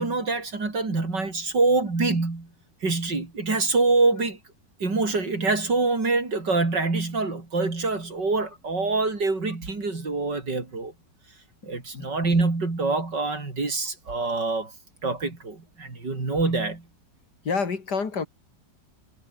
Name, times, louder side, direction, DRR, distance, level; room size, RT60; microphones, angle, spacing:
voice 1, 0.0-2.5 2.8-4.4 4.8-10.9 11.6-14.7 15.0-16.8, right 3 dB, 75° right, 5.3 m, -25 dB
voice 2, 17.4-18.3, left 5 dB, 65° left, 3.0 m, -27 dB
omnidirectional pair, 1.9 m